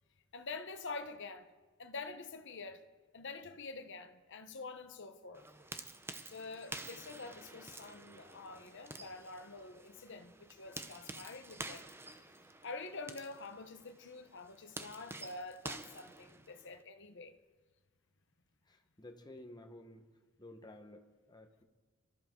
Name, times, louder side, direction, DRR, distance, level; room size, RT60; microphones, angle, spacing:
voice 1, 0.3-1.5 1.8-2.8 3.1-5.5 6.3-11.9 12.6-17.3, left 3 dB, 60° left, 1.1 m, -47 dB
sound 1, 5.3-16.8, right 2 dB, 10° right, 0.6 m, -49 dB
voice 2, 18.7-20.1 20.4-21.6, left 1 dB, 20° left, 1.3 m, -53 dB
24.0 x 13.5 x 3.8 m
head